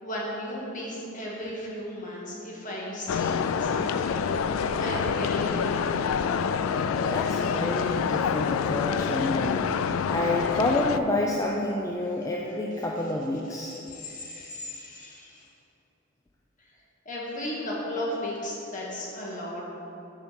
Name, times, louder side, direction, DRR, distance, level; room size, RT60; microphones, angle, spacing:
voice 1, 0.0-4.3 4.8-6.2 12.2-12.3 13.0-13.1 13.4-15.4 17.0-19.7, left 1 dB, 40° left, -4 dB, 1.7 m, -35 dB
sound 1, 3.1-11.0, left 6 dB, 85° left, 0.3 m, -27 dB
voice 2, 6.9-9.6 10.1-13.7, left 1 dB, 15° left, -1 dB, 0.4 m, -29 dB
7.1 x 5.0 x 6.4 m, 3.0 s
head